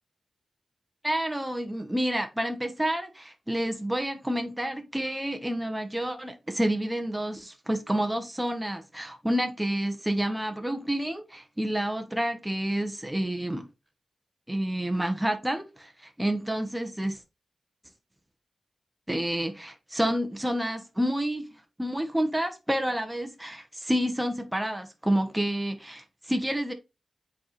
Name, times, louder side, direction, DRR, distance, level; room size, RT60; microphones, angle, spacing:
voice 1, 1.0-13.7 14.5-17.2 19.1-21.4 21.8-26.7, right 1 dB, 10° right, 1.0 m, -29 dB
7.6 x 4.2 x 3.1 m
cardioid pair, 55°, 0 cm